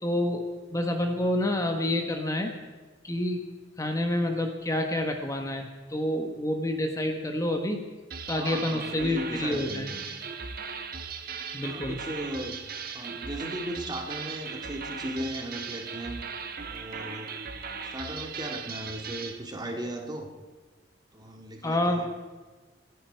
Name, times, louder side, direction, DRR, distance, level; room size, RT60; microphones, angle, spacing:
voice 1, 0.0-2.5 3.0-3.4 3.8-7.8 8.3-9.9 11.5-12.0 21.6-22.1, left 1 dB, 20° left, 4 dB, 1.3 m, -28 dB
sound 1, 8.1-19.4, right 5 dB, 55° right, 1.4 m, -38 dB
voice 2, 8.3-10.1 11.6-12.6 12.9-16.3 16.7-17.4 17.8-20.3 21.1-22.1, right 1 dB, 25° right, 3 dB, 2.0 m, -37 dB
26.5 x 10.5 x 4.5 m, 1.3 s
head